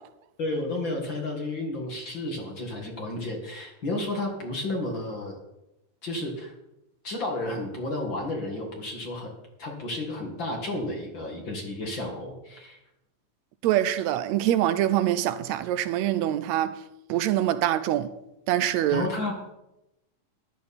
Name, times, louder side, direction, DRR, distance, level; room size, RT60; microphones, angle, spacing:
voice 1, 0.4-5.4 6.0-6.5 7.0-9.3 9.6-12.8 18.9-19.3, left 2 dB, 40° left, 2.2 m, -32 dB
voice 2, 13.6-16.7 17.1-18.1 18.5-19.1, right 12 dB, 75° right, 1.7 m, -24 dB
14.0 x 11.5 x 4.3 m
omnidirectional pair, 3.6 m